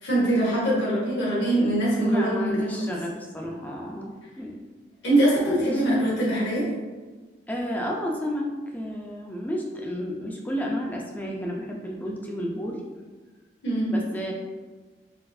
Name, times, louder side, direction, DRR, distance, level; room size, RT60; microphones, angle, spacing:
voice 1, 0.0-2.9 5.0-6.7 13.6-13.9, right 1 dB, 85° left, -6 dB, 1.0 m, -23 dB
voice 2, 2.0-4.5 5.4-6.0 7.5-8.4 8.7-12.8 13.9-14.3, equal, 10° left, -1 dB, 0.4 m, -31 dB
4.1 x 2.5 x 2.4 m, 1.3 s
head